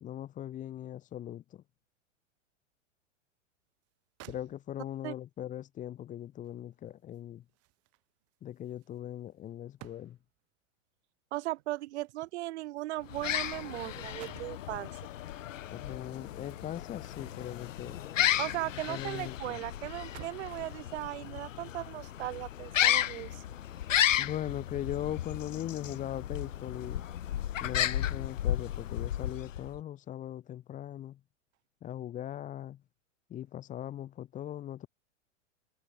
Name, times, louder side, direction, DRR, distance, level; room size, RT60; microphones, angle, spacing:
voice 1, 0.0-1.6 4.3-7.4 8.4-10.2 15.7-18.0 18.9-19.6 24.2-27.0 27.6-31.2 31.8-32.8 33.3-34.9, left 11 dB, 20° left, 0.8 m, -40 dB
sound 1, 3.8-3.9 4.2-5.0 6.4-10.4 11.5-13.7 13.9-14.7 16.2-17.7 18.1-19.1 19.4-19.5 19.9-20.6 21.3-21.5, right 21 dB, 40° right, 5.4 m, -56 dB
voice 2, 11.3-14.9 18.4-23.5, right 17 dB, 60° right, 1.1 m, -37 dB
sound 2, 13.0-29.8, left 11 dB, 80° left, 2.5 m, -33 dB
sound 3, 13.4-19.4, left 34 dB, 50° left, 5.6 m, -50 dB
hypercardioid pair, 125°, 38 cm